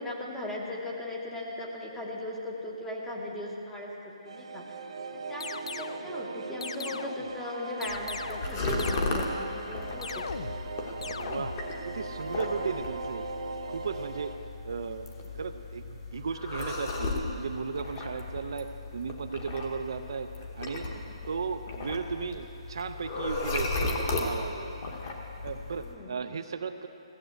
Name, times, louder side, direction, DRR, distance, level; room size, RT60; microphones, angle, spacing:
voice 1, 0.0-4.6 5.1-10.5 20.9-21.0 25.8-26.2, left 1 dB, 5° left, -2 dB, 0.8 m, -38 dB
sound 1, 4.3-14.4, right 3 dB, 75° right, 0.9 m, -40 dB
sound 2, 5.4-6.1 6.6-7.3 7.8-8.5 8.8-9.4 10.0-10.7 11.0-11.7, left 4 dB, 75° left, 0.5 m, -39 dB
sound 3, 7.9-25.9, left 2 dB, 25° left, 1.0 m, -35 dB
voice 2, 11.2-11.6 11.8-13.3 13.7-14.3 14.6-15.1 15.3-20.9 21.3-24.8 25.4-26.9, right 5 dB, 45° right, 8 dB, 0.5 m, -35 dB
15.0 x 7.4 x 8.0 m, 2.8 s
hypercardioid pair, 180°, 3 cm